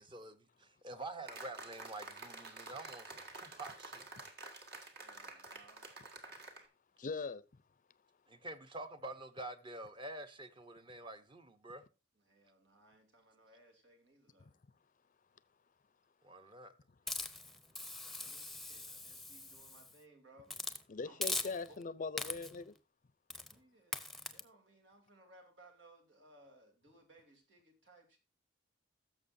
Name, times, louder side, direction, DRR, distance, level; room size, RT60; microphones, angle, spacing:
voice 1, 0.0-4.0 8.3-11.8 16.2-16.7, right 2 dB, 25° right, 0.9 m, -47 dB
sound 1, 1.3-6.6, right 3 dB, 60° right, 1.9 m, -50 dB
voice 2, 4.8-6.0 12.2-14.5 18.0-20.6 21.0-21.9 23.3-28.2, right 2 dB, 85° right, 3.3 m, -63 dB
voice 3, 7.0-7.5 20.9-22.7, left 4 dB, 45° left, 0.5 m, -41 dB
Hiss, 17.1-19.9 20.5-20.8 21.2-21.8 22.2-22.6 23.3-23.5 23.9-24.4, left 2 dB, ahead, 0.7 m, -41 dB
16.5 x 7.0 x 2.6 m
head